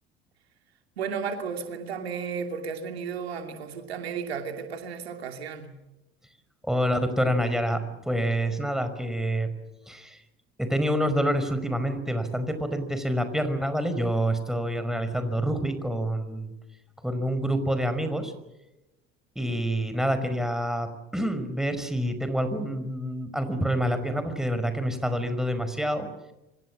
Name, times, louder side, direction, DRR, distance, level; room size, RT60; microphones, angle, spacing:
voice 1, 1.0-5.7, right 6 dB, 80° right, 5 dB, 2.8 m, -33 dB
voice 2, 6.6-9.5 9.9-10.2 10.6-16.5 17.0-18.3 19.4-26.1, equal, ahead, 9 dB, 5.2 m, -27 dB
28.5 x 25.0 x 7.6 m, 0.99 s
hypercardioid pair, 65°, 31 cm